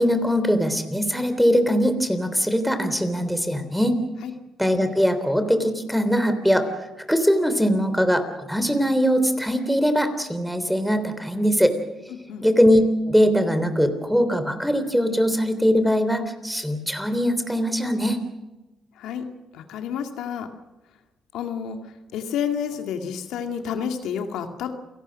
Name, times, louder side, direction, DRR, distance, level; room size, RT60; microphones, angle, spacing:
voice 1, 0.0-4.0 4.6-6.7 7.1-11.7 12.4-18.2, equal, ahead, 9 dB, 3.4 m, -21 dB
voice 2, 12.1-12.4 19.0-19.3 19.5-20.5 21.3-21.8 22.1-24.7, left 8 dB, 85° left, 5 dB, 2.2 m, -29 dB
29.0 x 17.5 x 6.5 m, 1.1 s
cardioid pair, 90°, 0 cm